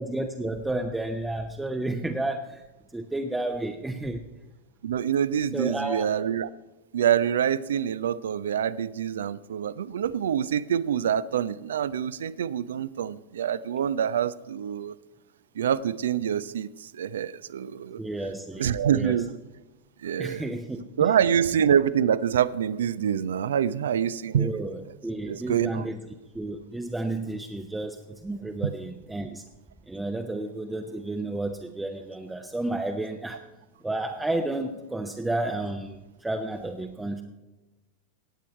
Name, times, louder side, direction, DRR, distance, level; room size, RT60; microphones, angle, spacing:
voice 1, 0.0-2.6 2.9-4.3 5.5-6.1 18.0-19.2 20.2-20.9 24.3-26.1 26.3-29.4 29.9-33.4 33.8-37.2, right 2 dB, 5° right, 5 dB, 0.7 m, -31 dB
voice 2, 4.8-6.5 6.9-14.9 15.6-18.0 18.6-19.4 20.0-20.5 21.0-24.6 25.2-25.9 28.6-28.7, right 9 dB, 65° right, 18 dB, 0.4 m, -26 dB
17.5 x 8.4 x 4.5 m, 1.1 s
figure-of-eight pair, 90°, 0 cm